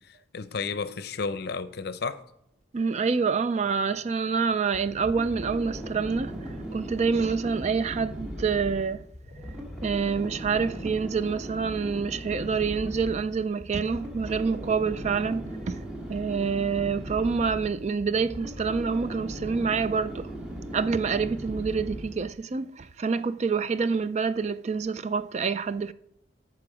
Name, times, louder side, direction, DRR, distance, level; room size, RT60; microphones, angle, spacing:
voice 1, 0.0-2.2, left 4 dB, 55° left, 0.6 m, -32 dB
voice 2, 2.7-9.0 9.8-15.8 16.1-20.3 20.7-25.9, right 5 dB, 35° right, 0.4 m, -27 dB
sound 1, 4.7-22.3, equal, 5° right, 1.9 m, -38 dB
14.0 x 6.0 x 4.9 m
head